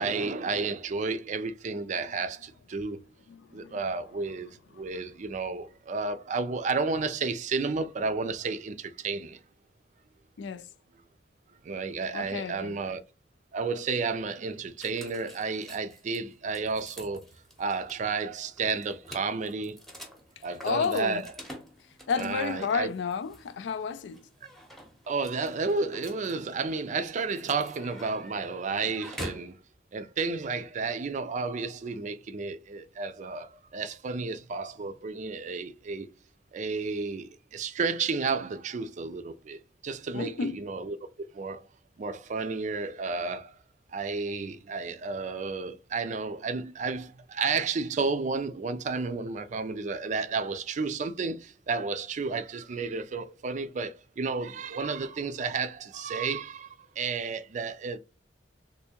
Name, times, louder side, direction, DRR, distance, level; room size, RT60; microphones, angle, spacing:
voice 1, 0.0-3.0 3.5-9.4 11.6-13.0 13.5-17.2 17.6-19.8 20.4-21.2 22.2-22.9 25.1-29.6 29.9-36.1 36.5-41.0 41.3-41.6 42.0-43.5 43.9-58.0, right 4 dB, 40° right, 0.4 m, -32 dB
voice 2, 3.3-3.8 4.8-4.9 10.4-10.7 12.1-12.8 20.4-21.3 22.1-24.3 40.1-40.6, left 5 dB, 75° left, 0.4 m, -32 dB
sound 1, 14.8-29.5, equal, ahead, 0.7 m, -47 dB
3.3 x 2.6 x 2.8 m
head